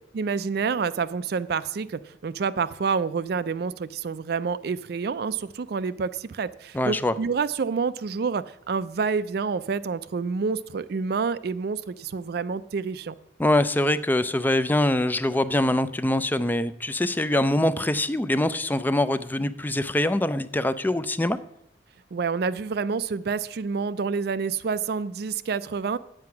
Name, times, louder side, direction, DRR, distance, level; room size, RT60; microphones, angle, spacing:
voice 1, 0.1-13.1 22.1-26.0, right 5 dB, 60° right, 15 dB, 0.4 m, -28 dB
voice 2, 6.7-7.1 13.4-21.4, left 1 dB, 10° left, 13 dB, 0.4 m, -24 dB
9.5 x 7.8 x 5.8 m, 0.74 s
head